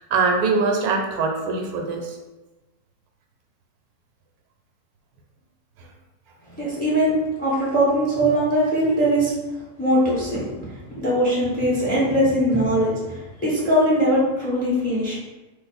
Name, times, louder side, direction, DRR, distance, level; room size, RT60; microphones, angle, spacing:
voice 1, 0.1-2.2, right 4 dB, 75° right, 2 dB, 1.0 m, -22 dB
voice 2, 6.5-7.1 7.4-9.3 9.8-15.2, equal, 10° left, -7 dB, 0.5 m, -21 dB
2.5 x 2.4 x 4.1 m, 1.1 s
omnidirectional pair, 1.6 m